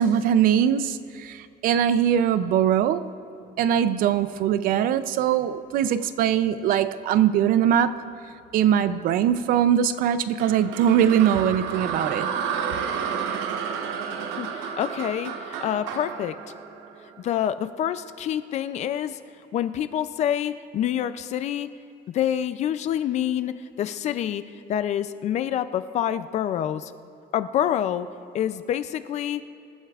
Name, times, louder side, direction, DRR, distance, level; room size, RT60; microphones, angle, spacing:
voice 1, 0.0-3.1 3.6-8.0 8.5-12.3, right 9 dB, 50° right, 0.5 m, -21 dB
sound 1, 10.4-17.6, right 7 dB, 85° right, 1.0 m, -31 dB
voice 2, 14.4-16.4 17.2-19.2 19.5-21.7 22.1-24.4 24.7-26.9 27.3-28.1 28.3-29.5, left 10 dB, 40° left, 0.4 m, -27 dB
25.0 x 12.5 x 2.4 m
cardioid pair, 175°, 18 cm